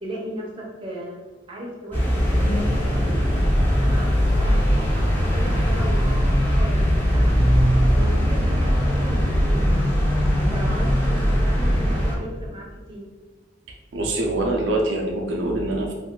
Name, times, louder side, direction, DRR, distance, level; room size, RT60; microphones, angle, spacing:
voice 1, 0.0-1.2 1.5-3.2 3.8-6.8 7.1-7.4 7.9-9.9 10.4-13.0, equal, 30° right, -2 dB, 0.6 m, -36 dB
sound 1, 1.9-12.2, equal, 10° left, 0.7 m, -20 dB
voice 2, 13.9-15.9, right 1 dB, 70° right, 0 dB, 0.4 m, -24 dB
2.5 x 2.3 x 3.6 m, 1.3 s
head